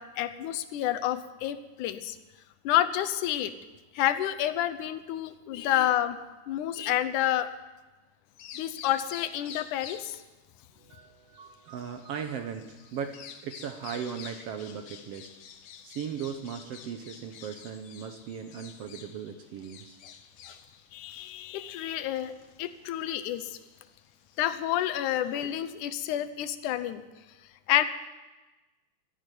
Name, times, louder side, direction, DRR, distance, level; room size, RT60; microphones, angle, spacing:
voice 1, 0.0-2.2 2.6-3.5 3.9-6.2 6.5-7.5 8.6-10.2 20.5-20.6 20.9-22.3 22.6-23.5 24.4-27.0 27.7-27.9, left 12 dB, 85° left, 11 dB, 2.3 m, -29 dB
Bird vocalization bird call bird song, 8.3-25.6, left 8 dB, 70° left, 2.2 m, -50 dB
voice 2, 10.8-15.3 15.8-20.0 25.4-25.5, right 7 dB, 70° right, 7 dB, 1.5 m, -38 dB
13.0 x 10.5 x 9.2 m, 1.1 s
omnidirectional pair, 3.5 m